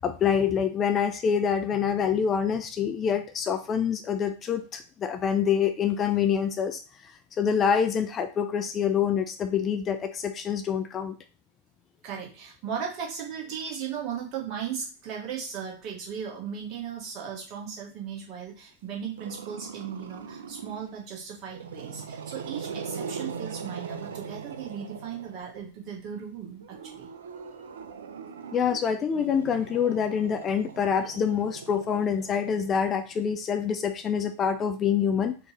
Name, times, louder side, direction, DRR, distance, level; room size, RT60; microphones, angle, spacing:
voice 1, 0.0-11.2 28.5-35.4, left 7 dB, 25° left, 9 dB, 0.4 m, -26 dB
voice 2, 12.0-27.1, right 7 dB, 40° right, -1 dB, 1.4 m, -37 dB
Growling, 19.2-20.9 21.5-25.6 26.6-33.1, right 6 dB, 65° right, 0.5 m, -40 dB
4.2 x 2.9 x 3.0 m, 0.35 s
figure-of-eight pair, 90°, 0 cm